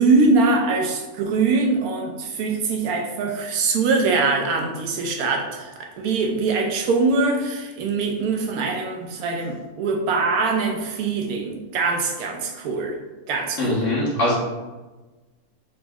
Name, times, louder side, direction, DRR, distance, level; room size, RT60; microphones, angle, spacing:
voice 1, 0.0-13.0 13.3-13.9, right 3 dB, 85° right, 1 dB, 1.1 m, -22 dB
voice 2, 13.6-14.3, left 1 dB, 60° left, -6 dB, 1.3 m, -22 dB
3.9 x 2.1 x 3.4 m, 1.2 s
omnidirectional pair, 1.5 m